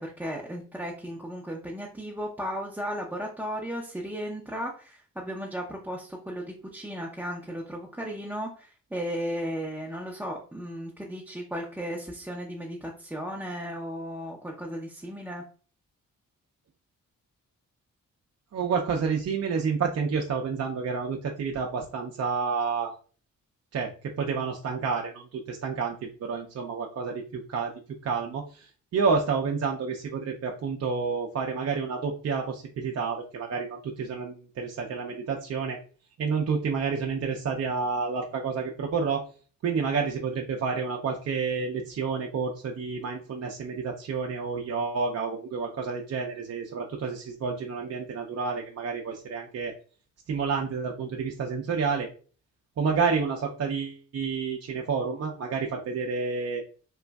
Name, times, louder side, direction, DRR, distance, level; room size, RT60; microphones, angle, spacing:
voice 1, 0.0-15.4, equal, 5° right, -2 dB, 0.5 m, -35 dB
voice 2, 18.5-22.9 23.7-27.7 28.0-35.8 36.2-39.2 39.6-49.7 50.3-52.1 52.8-56.6, right 5 dB, 50° right, 1 dB, 0.5 m, -29 dB
3.0 x 2.4 x 2.3 m, 0.39 s
supercardioid pair, 55°, 33 cm